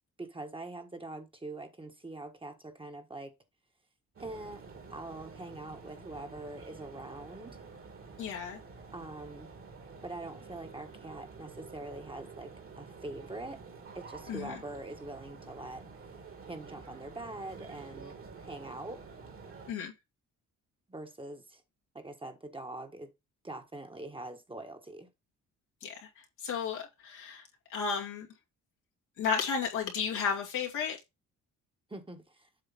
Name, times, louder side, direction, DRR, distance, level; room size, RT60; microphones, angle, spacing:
voice 1, 0.2-3.3 4.2-4.6 4.9-7.6 8.9-9.5 10.0-13.6 13.9-15.8 16.5-18.2 18.4-19.0 20.9-21.6 21.9-23.1 23.4-25.1 31.9-32.5, right 2 dB, 15° right, 1.4 m, -43 dB
sound 1, 4.2-19.7, right 4 dB, 45° right, 2.1 m, -49 dB
voice 2, 8.2-8.6 14.3-14.6 19.7-19.9 25.8-27.4 27.7-28.3 29.2-31.0, left 6 dB, 90° left, 2.4 m, -33 dB
7.7 x 3.1 x 5.9 m
cardioid pair, 90°, 30 cm